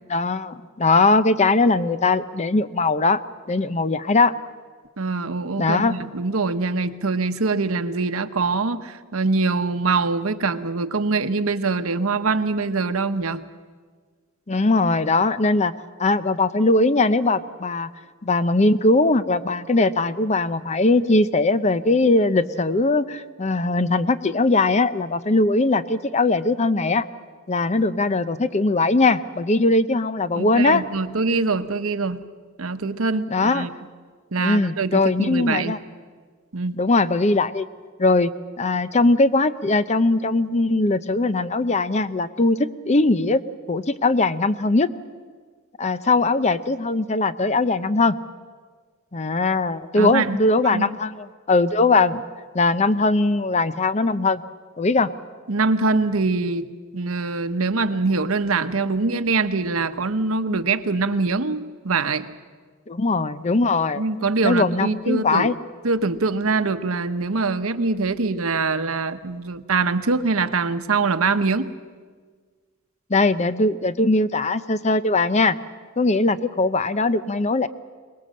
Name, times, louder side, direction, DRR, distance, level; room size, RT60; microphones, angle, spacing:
voice 1, 0.1-3.2 3.5-4.3 5.6-5.9 14.5-15.7 16.0-17.9 18.2-27.0 27.5-30.8 33.3-33.7 34.4-35.8 36.7-37.7 38.0-38.3 38.6-43.4 43.7-44.9 45.8-48.1 49.1-52.2 52.5-54.4 54.8-55.1 62.9-64.0 64.4-65.6 73.1-75.6 76.0-77.7, left 3 dB, 35° left, 14 dB, 0.7 m, -20 dB
voice 2, 5.0-13.4 30.4-32.2 32.6-33.7 34.3-35.8 36.5-36.8 50.0-50.4 50.7-50.9 55.5-62.3 64.0-65.5 65.8-71.7, right 3 dB, 85° right, 11 dB, 1.0 m, -23 dB
23.5 x 20.0 x 7.6 m, 1.5 s
head